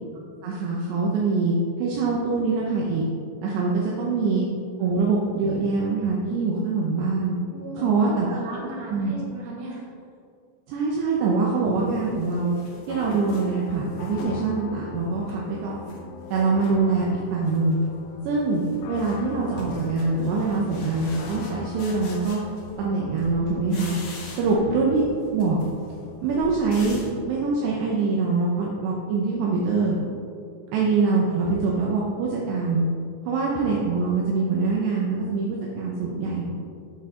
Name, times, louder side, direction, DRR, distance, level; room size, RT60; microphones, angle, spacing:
voice 1, 0.4-3.0 3.4-3.7 4.0-4.5 4.8-7.3 7.8-8.3 8.9-9.1 10.7-12.6 12.9-15.8 16.3-17.1 17.3-17.8 18.3-22.4 22.8-24.0 24.4-25.0 25.3-25.6 26.2-27.0 27.3-30.0 30.7-32.9 33.3-36.5, right 4 dB, 80° right, -3 dB, 2.4 m, -24 dB
voice 2, 3.7-4.0 7.5-9.9 24.4-24.7 30.7-30.8, right 1 dB, 60° right, -4 dB, 2.3 m, -37 dB
sound 1, 11.0-11.1 11.6-14.5 14.9-16.0 16.3-17.1 17.4-17.9 18.2-22.9 23.2-24.7 24.9-27.2, left 1 dB, 65° left, 2.0 m, -42 dB
sound 2, 12.9-29.4, left 4 dB, 80° left, 3.0 m, -41 dB
8.5 x 8.1 x 3.7 m, 2.4 s
omnidirectional pair, 6.0 m